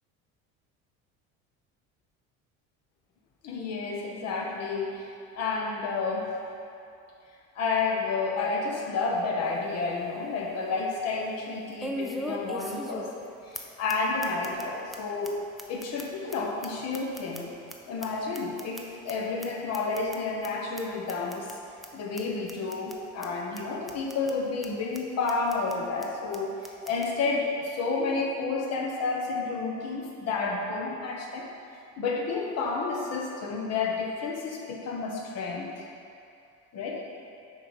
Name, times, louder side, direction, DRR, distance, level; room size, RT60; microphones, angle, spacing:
voice 1, 3.4-6.4 7.5-15.4 15.7-17.6 17.9-21.5 21.9-26.6 26.8-31.5 32.0-35.7 36.7-37.0, left 4 dB, 55° left, -1 dB, 1.2 m, -30 dB
sound 1, 9.4-9.5 10.0-10.1 11.8-13.3 13.5-13.6 13.9-14.0 14.2-14.6 14.9-15.0 15.2-15.3 15.6-17.7 18.0-19.1 19.4-19.5 19.7-20.2 20.4-20.5 20.8-20.9 21.1-21.5 21.8-21.9 22.2-22.3 22.5-22.9 23.2-23.3 23.6-23.7 23.9-24.3 24.6-24.7 24.9-25.0 25.3-25.7 26.0-26.1 26.3-26.4 26.6-27.1, equal, ahead, 0.5 m, -38 dB
7.0 x 4.0 x 4.9 m, 2.6 s
cardioid pair, 115°, 32 cm